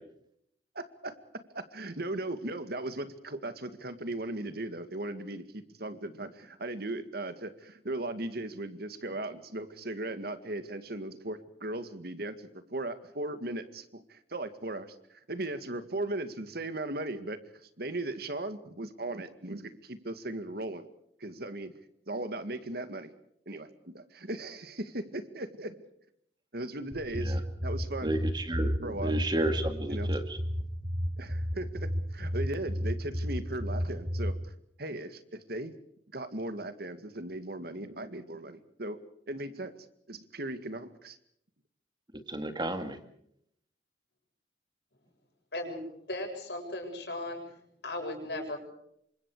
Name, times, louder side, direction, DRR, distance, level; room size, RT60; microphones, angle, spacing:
voice 1, 0.8-1.1 1.5-17.4 17.8-20.9 21.2-21.7 22.1-23.1 23.5-25.8 26.5-28.2 28.8-29.2 29.9-30.2 31.2-34.5 34.8-35.7 36.1-39.0 39.3-39.7 40.1-41.2, right 2 dB, 60° right, 10 dB, 2.1 m, -37 dB
sound 1, 26.9-34.3, equal, 40° right, 5.9 m, -33 dB
voice 2, 28.0-30.2 42.3-43.0, right 1 dB, 25° right, 7 dB, 2.3 m, -32 dB
voice 3, 45.5-47.4 47.8-48.6, left 1 dB, 65° left, 3 dB, 7.4 m, -37 dB
28.5 x 25.5 x 4.9 m, 0.72 s
head